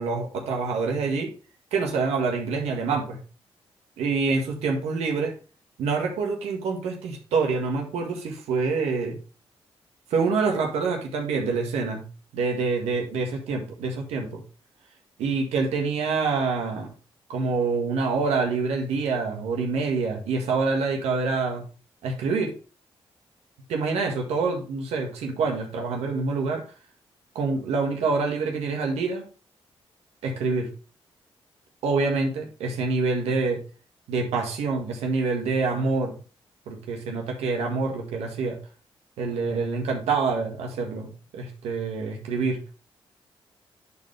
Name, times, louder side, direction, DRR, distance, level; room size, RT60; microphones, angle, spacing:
voice 1, 0.0-1.3 1.7-3.2 4.0-5.3 5.8-9.2 10.1-12.0 12.3-14.4 15.2-16.9 17.3-21.6 22.0-22.5 23.7-26.6 27.3-29.2 30.2-30.7 31.8-33.6 34.1-36.1 36.7-38.6 39.2-42.6, right 4 dB, 90° right, 2 dB, 1.6 m, -26 dB
10.5 x 4.6 x 3.3 m, 0.35 s
supercardioid pair, 60°, 10 cm